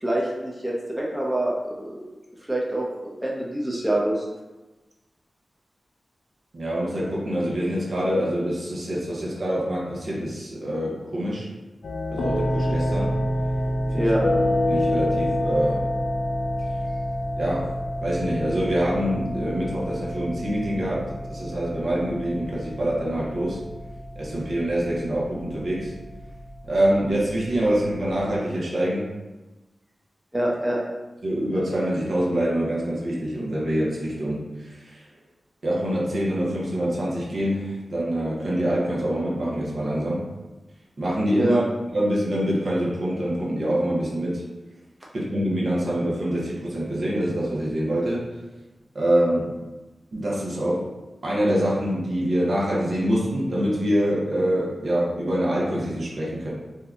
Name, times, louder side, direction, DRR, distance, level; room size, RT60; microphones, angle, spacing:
voice 1, 0.0-2.0 2.5-4.3 13.9-14.2 30.3-30.8 41.4-41.6, right 1 dB, 15° right, -4 dB, 0.7 m, -25 dB
voice 2, 6.5-11.5 12.1-13.1 13.9-14.1 14.7-15.8 17.4-17.7 18.0-23.6 24.2-25.9 26.6-29.1 31.2-35.0 35.6-40.2 41.0-41.6 41.9-44.4 45.1-48.3 48.9-49.5 50.1-50.8 51.2-56.5, right 1 dB, 65° right, -5 dB, 0.9 m, -25 dB
sound 1, 11.8-28.3, left 1 dB, 85° left, 0.4 m, -28 dB
2.8 x 2.2 x 3.7 m, 1.1 s
cardioid pair, 55°, 0 cm